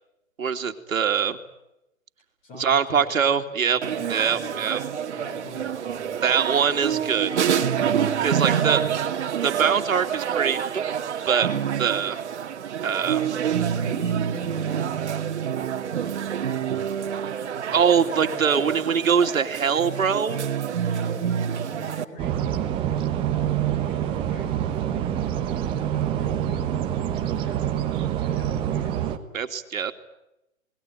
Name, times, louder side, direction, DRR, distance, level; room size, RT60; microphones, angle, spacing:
voice 1, 0.4-1.4 2.5-3.8 4.1-4.8 6.2-7.3 8.2-8.8 9.4-10.9 11.2-11.5 11.8-12.2 12.8-13.2 17.7-20.4 29.3-29.9, right 7 dB, 85° right, 6 dB, 2.7 m, -23 dB
voice 2, 2.4-4.6 5.2-6.2 6.7-7.2 8.2-9.0 13.0-13.1 13.4-14.9 17.5-18.8 20.8-26.6 27.0-27.8 28.2-29.0, left 2 dB, 20° left, 6 dB, 7.3 m, -44 dB
sound 1, 3.8-22.0, right 8 dB, 55° right, 2.2 m, -27 dB
sound 2, 22.2-29.2, right 10 dB, 15° right, 1.3 m, -26 dB
29.5 x 20.5 x 9.4 m, 0.90 s
hypercardioid pair, 160°, 40 cm